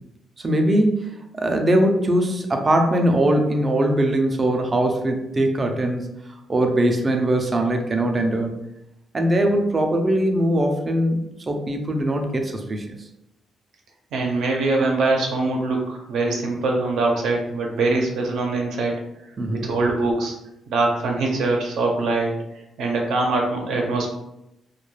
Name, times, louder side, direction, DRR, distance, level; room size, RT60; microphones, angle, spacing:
voice 1, 0.4-6.1 6.5-8.5 9.1-11.2 11.5-12.9 19.4-19.7, right 1 dB, 25° right, 4 dB, 0.4 m, -21 dB
voice 2, 14.1-18.9 19.5-20.3 20.7-24.1, right 3 dB, 85° right, 1 dB, 0.6 m, -23 dB
2.2 x 2.2 x 3.1 m, 0.87 s
cardioid pair, 125°, 0 cm